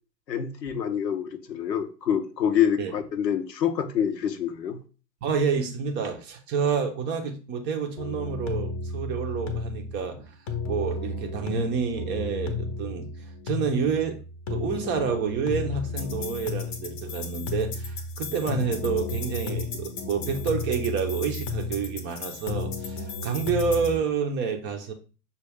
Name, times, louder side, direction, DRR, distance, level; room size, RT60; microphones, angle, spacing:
voice 1, 0.3-4.8, left 9 dB, 85° left, 0.7 m, -26 dB
voice 2, 5.2-10.3 10.6-13.1 13.5-14.2 14.5-24.9, right 6 dB, 25° right, 0.5 m, -28 dB
sound 1, 8.0-24.0, left 3 dB, 25° left, 0.7 m, -33 dB
5.9 x 2.3 x 3.3 m
hypercardioid pair, 100°, 49 cm